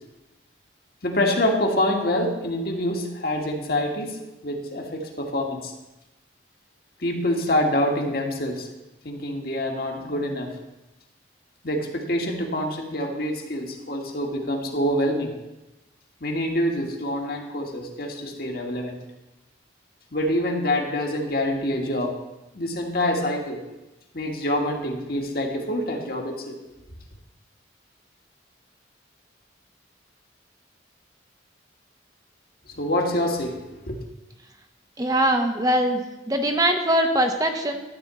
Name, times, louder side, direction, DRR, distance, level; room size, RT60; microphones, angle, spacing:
voice 1, 1.0-4.2 4.4-5.7 7.0-8.7 9.0-10.5 11.6-15.3 16.2-19.0 20.1-22.2 22.6-23.6 24.1-26.6 32.7-34.0, left 1 dB, 50° left, 1 dB, 1.6 m, -26 dB
voice 2, 35.0-36.0 36.3-37.8, right 1 dB, 20° right, 5 dB, 0.7 m, -22 dB
12.5 x 4.4 x 8.1 m, 1.0 s
head